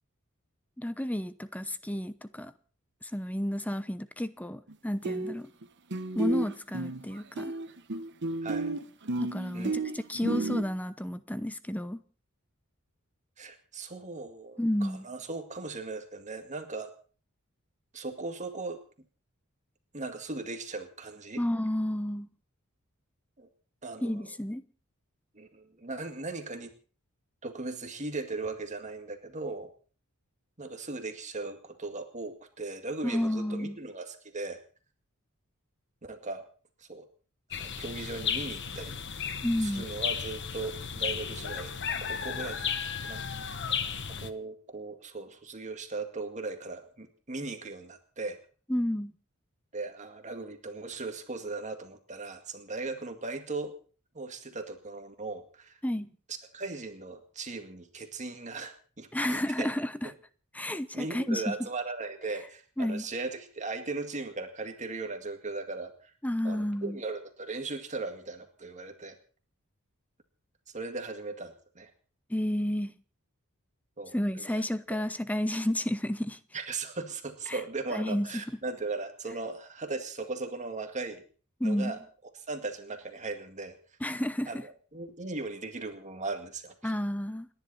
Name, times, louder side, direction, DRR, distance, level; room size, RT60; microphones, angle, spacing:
voice 1, 0.8-2.5 3.0-5.5 6.1-7.5 9.2-12.0 14.6-15.0 21.4-22.3 24.0-24.6 33.0-33.8 39.4-39.8 48.7-49.1 55.8-56.1 59.1-60.1 60.5-61.5 62.8-63.1 66.2-67.0 72.3-72.9 74.1-76.4 77.5-77.6 77.9-78.4 81.6-82.0 84.0-84.6 86.8-87.5, left 1 dB, 5° left, 0.8 m, -31 dB
sound 1, 4.7-4.8 5.0-5.6 5.9-10.6, right 2 dB, 55° right, 1.3 m, -32 dB
voice 2, 13.4-16.9 17.9-18.8 19.9-21.4 23.4-23.5 23.8-24.2 25.3-26.7 27.4-29.7 30.6-34.6 36.0-36.4 36.8-37.1 37.6-39.0 39.2-39.3 39.6-43.2 44.1-48.4 49.7-53.7 54.1-55.8 56.3-59.7 60.9-66.1 66.4-69.2 70.7-71.9 74.0-74.6 76.5-81.2 81.6-82.0 82.5-83.8 84.5-84.6 84.9-86.9, right 3 dB, 35° right, 2.0 m, -38 dB
sound 2, 37.5-44.3, left 7 dB, 55° left, 1.3 m, -34 dB
30.0 x 10.5 x 4.3 m
head